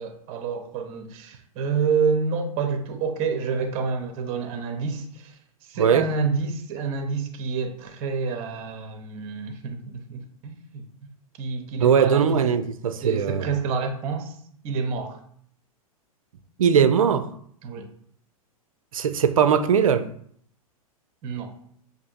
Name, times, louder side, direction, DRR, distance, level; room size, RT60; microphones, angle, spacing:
voice 1, 0.0-5.3 5.6-11.1 11.4-12.3 13.0-14.4 14.6-15.2 17.6-17.9 21.2-21.5, right 5 dB, 35° right, 0.7 m, -28 dB
voice 2, 11.8-13.5 16.6-17.3 18.9-20.1, right 7 dB, 65° right, 0.5 m, -20 dB
6.6 x 2.6 x 2.6 m
figure-of-eight pair, 100°, 19 cm